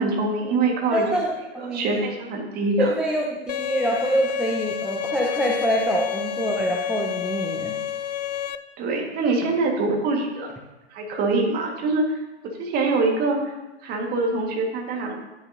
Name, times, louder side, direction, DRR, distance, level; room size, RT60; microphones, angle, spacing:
voice 1, 0.0-1.1 1.6-3.0 8.8-10.5 10.9-12.2 12.6-13.5 13.8-15.1, right 3 dB, 25° right, 1 dB, 1.9 m, -24 dB
voice 2, 0.9-2.0 2.8-7.8, right 1 dB, ahead, -2 dB, 0.7 m, -25 dB
Bowed string instrument, 3.5-8.5, left 11 dB, 40° left, 0.4 m, -29 dB
10.0 x 9.5 x 2.8 m, 1.0 s
figure-of-eight pair, 105°, 34 cm